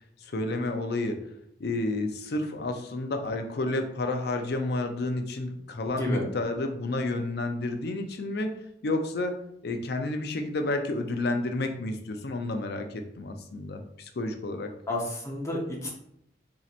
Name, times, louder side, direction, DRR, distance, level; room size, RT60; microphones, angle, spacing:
voice 1, 0.2-1.2 1.6-8.6 8.8-9.4 9.6-14.7, left 2 dB, 60° left, 5 dB, 0.4 m, -30 dB
voice 2, 5.9-6.2 14.9-15.9, left 1 dB, 15° left, -2 dB, 0.8 m, -31 dB
4.2 x 2.8 x 2.4 m, 0.73 s
head